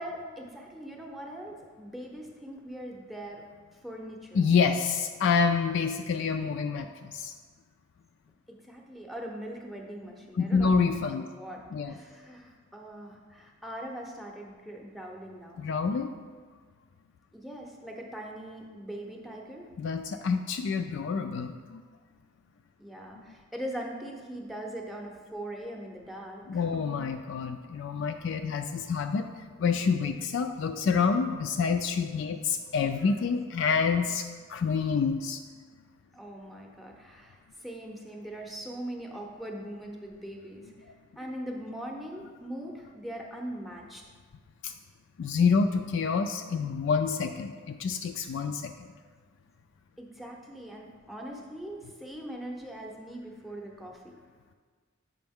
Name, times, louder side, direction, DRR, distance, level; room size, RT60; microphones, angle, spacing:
voice 1, 0.0-3.4 3.7-4.4 8.5-10.8 11.2-15.7 17.3-19.7 22.8-26.8 36.1-40.7 41.2-44.0 50.0-54.2, right 1 dB, ahead, 1 dB, 0.7 m, -41 dB
voice 2, 4.3-7.3 10.4-11.2 11.7-11.9 15.6-16.1 19.8-21.8 26.5-29.3 29.6-35.4 44.6-44.7 45.2-48.9, left 5 dB, 60° left, 6 dB, 0.3 m, -27 dB
7.7 x 5.3 x 3.5 m, 1.6 s
head